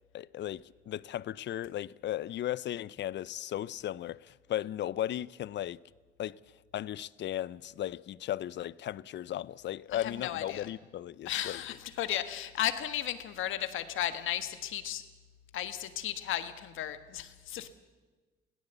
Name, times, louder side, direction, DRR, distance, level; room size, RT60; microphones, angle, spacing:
voice 1, 0.1-5.8 6.2-6.4 6.7-11.6, left 12 dB, 65° left, 0.6 m, -36 dB
voice 2, 9.9-10.7 11.2-15.1 15.5-17.7, left 11 dB, 85° left, 1.5 m, -35 dB
21.5 x 17.0 x 8.1 m
cardioid pair, 90°, 20 cm